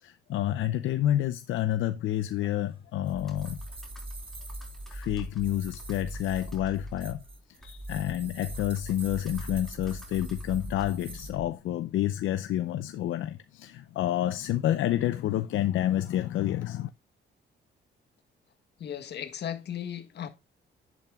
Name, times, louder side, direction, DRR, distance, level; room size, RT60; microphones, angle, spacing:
voice 1, 0.0-3.6 4.9-7.2 7.6-16.9, left 12 dB, 80° left, 0.6 m, -29 dB
sound 1, 2.4-11.3, right 3 dB, 25° right, 1.9 m, -48 dB
Computer keyboard, 3.1-11.7, right 1 dB, ahead, 3.4 m, -41 dB
voice 2, 18.8-20.3, left 9 dB, 60° left, 1.6 m, -36 dB
10.5 x 8.7 x 2.3 m
cardioid pair, 90°, 20 cm